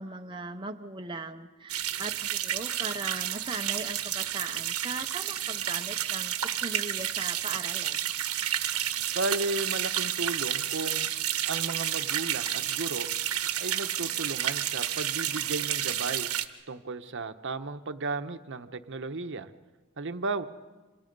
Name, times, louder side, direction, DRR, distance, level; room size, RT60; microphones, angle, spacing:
voice 1, 0.0-8.0, right 3 dB, 20° right, 4 dB, 0.8 m, -39 dB
sound 1, 1.7-16.4, right 11 dB, 90° right, 1.3 m, -31 dB
voice 2, 9.1-11.1 11.4-13.1 13.6-16.3 16.7-19.5 20.0-20.4, right 3 dB, 55° right, 9 dB, 1.0 m, -34 dB
27.5 x 27.0 x 5.4 m, 1.2 s
head